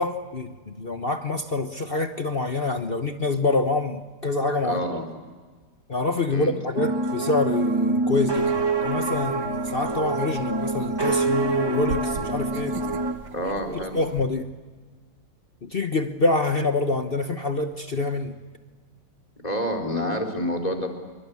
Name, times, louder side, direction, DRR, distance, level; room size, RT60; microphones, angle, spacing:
voice 1, 0.0-4.8 5.9-12.8 13.7-14.5 15.6-18.3, left 3 dB, 35° left, 6 dB, 1.2 m, -26 dB
voice 2, 4.6-5.0 6.3-6.6 13.3-14.0 19.4-20.9, equal, 20° left, 5 dB, 4.2 m, -28 dB
sound 1, 6.8-13.1, right 3 dB, 15° right, 1.7 m, -25 dB
sound 2, 8.1-14.2, right 5 dB, 85° right, 2.1 m, -41 dB
27.5 x 24.0 x 8.5 m, 1.4 s
omnidirectional pair, 1.9 m